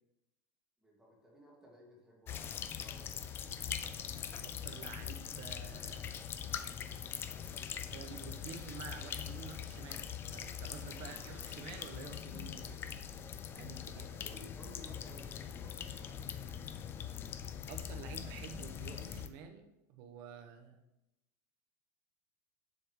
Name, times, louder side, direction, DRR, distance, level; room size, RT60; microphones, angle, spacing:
voice 1, 0.8-3.2 11.0-11.3 13.9-16.2, equal, 5° right, -4 dB, 2.0 m, -57 dB
sound 1, 2.3-19.3, left 8 dB, 25° left, 0.4 m, -42 dB
voice 2, 4.4-6.1 7.8-13.0 13.5-14.1 17.6-20.8, right 6 dB, 45° right, 5 dB, 0.9 m, -50 dB
7.5 x 6.5 x 3.1 m, 0.91 s
supercardioid pair, 150°, 10 cm